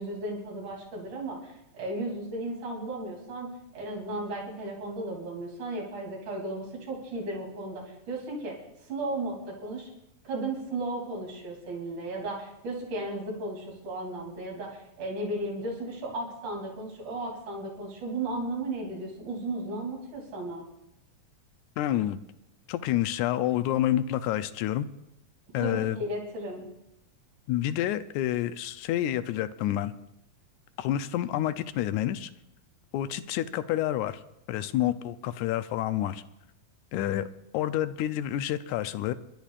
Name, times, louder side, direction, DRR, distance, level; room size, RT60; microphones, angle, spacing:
voice 1, 0.0-8.6 8.9-9.9 10.2-20.6 25.6-26.6, right 2 dB, 70° right, -2 dB, 4.5 m, -35 dB
voice 2, 21.8-22.2 22.7-24.9 25.5-26.0 27.5-29.9 30.8-32.3 32.9-34.2 34.5-36.2 36.9-37.3 37.5-39.1, left 12 dB, 80° left, 12 dB, 1.9 m, -28 dB
29.0 x 11.5 x 2.5 m, 0.84 s
omnidirectional pair, 3.6 m